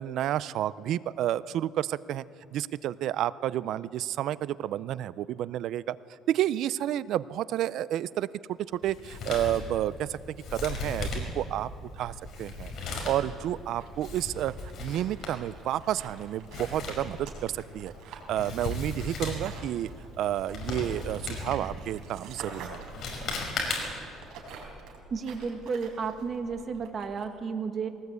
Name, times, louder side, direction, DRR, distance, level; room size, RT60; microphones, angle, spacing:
voice 1, 0.0-2.2 2.5-6.0 6.3-8.6 8.8-11.7 12.0-14.5 14.8-19.9 20.2-22.8, right 12 dB, 60° right, 18 dB, 0.4 m, -30 dB
Male speech man speaking, 8.8-24.1, left 2 dB, 45° left, 5.2 m, -37 dB
sound 1, 11.7-27.2, right 4 dB, 75° right, 4.3 m, -48 dB
voice 2, 25.1-27.9, right 5 dB, 35° right, 6 dB, 1.7 m, -32 dB
21.5 x 18.5 x 8.2 m, 2.6 s
cardioid pair, 150°, 0 cm